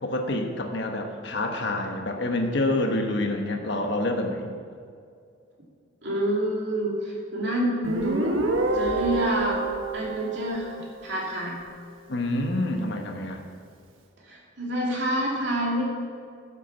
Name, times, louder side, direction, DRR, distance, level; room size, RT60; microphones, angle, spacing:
voice 1, 0.0-4.5 12.1-13.4, left 1 dB, 60° left, 3 dB, 1.1 m, -27 dB
voice 2, 6.0-8.3 8.7-9.6 9.9-11.6 14.2-15.8, right 1 dB, 60° right, -4 dB, 2.6 m, -28 dB
Guitar, 7.8-11.3, right 2 dB, 75° right, 1.1 m, -28 dB
Bird, 7.9-11.1 11.6-11.7 12.0-12.3 13.1-13.2, equal, 10° left, 2.6 m, -46 dB
9.7 x 8.2 x 6.0 m, 2.3 s
head